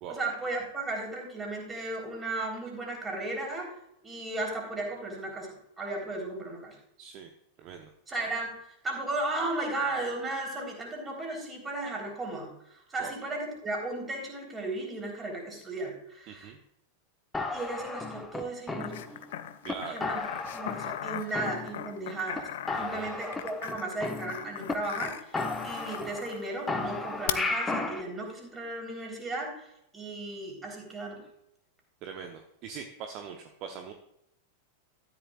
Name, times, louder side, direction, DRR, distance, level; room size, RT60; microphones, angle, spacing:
voice 1, 0.1-3.8 4.0-6.8 8.1-8.6 8.8-16.5 17.5-19.0 19.9-20.2 20.5-31.2, right 2 dB, 15° right, 0 dB, 3.8 m, -35 dB
voice 2, 7.0-7.3 7.6-7.9 13.0-13.1 16.3-16.6 19.6-20.0 22.8-23.1 32.0-33.9, right 7 dB, 40° right, 4 dB, 0.9 m, -42 dB
sound 1, 17.3-19.3 19.7-19.8 20.0-21.1 21.3-22.1 22.3-22.4 22.7-24.7 25.0-25.1 25.3-26.4 26.7-28.0, left 3 dB, 10° left, 1.0 m, -34 dB
sound 2, 18.8-26.5 27.3-27.4, left 12 dB, 55° left, 0.6 m, -39 dB
13.0 x 10.5 x 2.4 m, 0.79 s
figure-of-eight pair, 90°, 0 cm